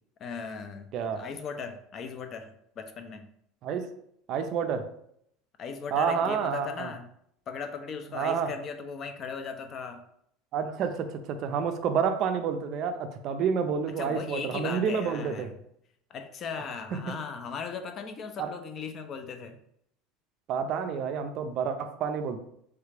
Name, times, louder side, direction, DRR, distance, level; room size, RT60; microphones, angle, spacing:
voice 1, 0.2-3.3 5.6-7.1 7.5-10.0 14.0-15.5 16.1-19.6, left 5 dB, 40° left, 8 dB, 0.4 m, -38 dB
voice 2, 0.9-1.3 3.6-3.9 4.3-4.9 5.9-6.9 8.1-8.5 10.5-15.5 16.9-17.0 18.4-18.5 20.5-22.4, right 6 dB, 50° right, 8 dB, 0.4 m, -29 dB
3.2 x 2.4 x 3.2 m, 0.71 s
supercardioid pair, 125°, 0 cm